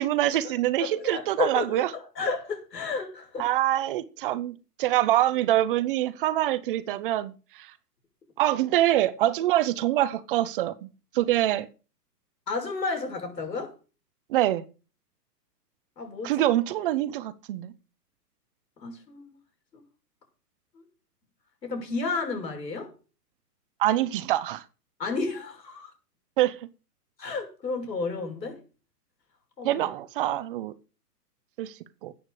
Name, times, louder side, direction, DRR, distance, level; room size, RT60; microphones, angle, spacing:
voice 1, 0.0-1.9 3.4-7.7 8.4-10.9 11.1-11.7 14.3-14.6 16.2-17.7 23.8-24.6 26.4-26.6 29.6-30.7 31.6-31.7 32.0-32.1, right 14 dB, 35° right, 0.8 m, -25 dB
voice 2, 0.8-3.5 12.5-13.7 16.0-16.3 18.8-19.4 19.7-19.8 20.7-20.8 21.6-22.9 25.0-25.9 27.2-28.6 29.6-29.8, left 4 dB, 85° left, 6.1 m, -32 dB
13.0 x 8.8 x 4.9 m
hypercardioid pair, 135°, 48 cm